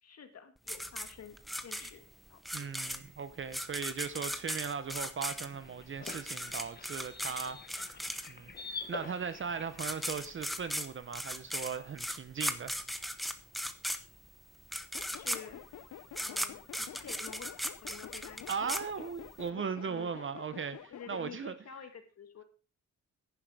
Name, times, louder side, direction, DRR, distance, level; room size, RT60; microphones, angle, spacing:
voice 1, 0.0-2.7 15.1-15.6 16.2-17.5 17.8-18.8 19.5-20.1 20.9-22.4, left 7 dB, 60° left, 2.1 m, -50 dB
sound 1, 0.7-8.6 9.4-9.5 9.7-19.4, equal, ahead, 0.9 m, -38 dB
voice 2, 2.5-7.9 8.3-12.8 18.5-21.5, right 6 dB, 45° right, 0.9 m, -38 dB
sound 2, 5.3-10.8, left 5 dB, 35° left, 1.3 m, -47 dB
sound 3, 14.9-21.3, left 10 dB, 85° left, 1.0 m, -49 dB
11.0 x 10.5 x 4.9 m
wide cardioid pair, 155°, 29 cm